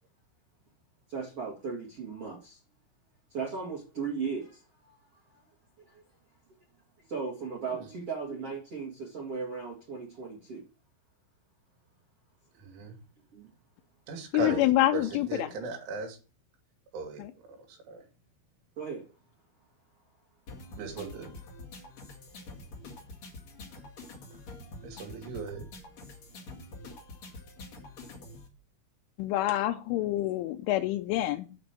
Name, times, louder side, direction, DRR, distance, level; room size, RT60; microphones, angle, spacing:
voice 1, 1.1-2.6 3.3-4.9 5.9-6.0 7.1-10.6 13.3-13.5 14.4-14.6 18.8-19.0, right 5 dB, 50° right, 1.9 m, -37 dB
voice 2, 12.5-13.0 14.1-14.6 14.9-16.2 16.9-17.2 17.5-18.0 20.8-21.3 24.8-25.6, right 4 dB, 80° right, 4.8 m, -38 dB
voice 3, 14.3-15.5 17.2-17.3 29.2-31.6, left 15 dB, 85° left, 3.1 m, -27 dB
sound 1, 20.5-28.5, left 2 dB, 45° left, 2.5 m, -46 dB
8.7 x 5.3 x 6.8 m
omnidirectional pair, 5.5 m